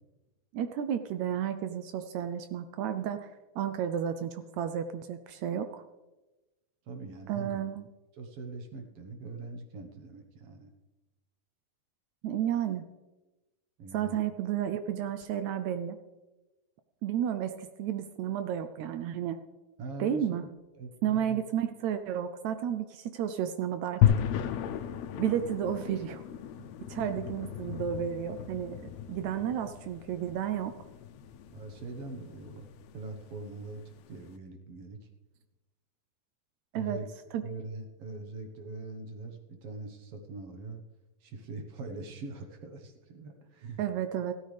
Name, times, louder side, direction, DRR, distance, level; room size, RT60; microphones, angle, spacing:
voice 1, 0.5-5.8 7.3-7.8 12.2-12.9 13.9-16.0 17.0-19.4 20.0-20.4 21.0-24.2 25.2-26.2 26.9-30.8 36.7-37.0 37.3-37.4 43.8-44.3, right 9 dB, 80° right, 9 dB, 1.8 m, -32 dB
voice 2, 6.9-7.6 8.1-10.7 13.8-14.2 19.8-21.4 26.6-26.8 31.5-32.7 32.9-35.1 36.7-37.1 37.4-40.8 41.2-43.8, right 3 dB, 55° right, 5 dB, 2.0 m, -42 dB
sound 1, 24.0-34.3, left 10 dB, 75° left, 1.8 m, -34 dB
15.5 x 13.0 x 3.4 m, 1.1 s
omnidirectional pair, 3.5 m